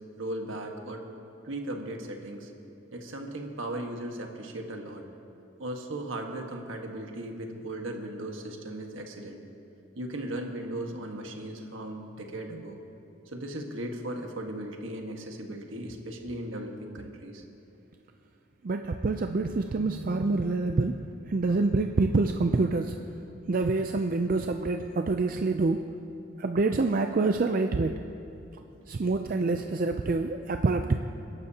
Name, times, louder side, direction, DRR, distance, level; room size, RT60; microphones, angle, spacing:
voice 1, 0.2-1.1 1.4-2.5 2.9-5.1 5.6-9.4 9.9-12.8 13.2-17.4 20.1-20.4, right 1 dB, 75° right, 2 dB, 1.5 m, -37 dB
voice 2, 18.6-20.9 21.3-22.9 23.5-25.8 26.4-27.9 28.9-31.0, right 3 dB, 45° right, 6 dB, 0.4 m, -26 dB
Keyboard (musical), 19.7-21.5, left 1 dB, 25° right, 1.3 m, -43 dB
28.0 x 12.0 x 2.9 m, 2.7 s
head